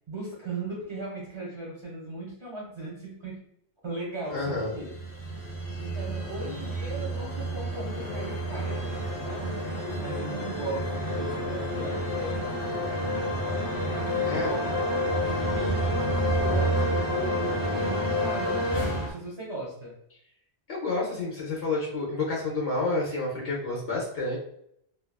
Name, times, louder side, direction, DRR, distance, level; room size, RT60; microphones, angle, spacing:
voice 1, 0.1-3.5 3.8-4.9 5.8-9.6 10.0-14.8 15.2-19.9, right 2 dB, 35° right, -4 dB, 0.6 m, -38 dB
voice 2, 4.3-4.8 14.2-14.5 20.7-24.4, left 2 dB, 65° left, -3 dB, 0.9 m, -29 dB
sound 1, 4.4-19.1, equal, 35° left, 0.3 m, -29 dB
2.7 x 2.3 x 2.2 m, 0.70 s
omnidirectional pair, 1.1 m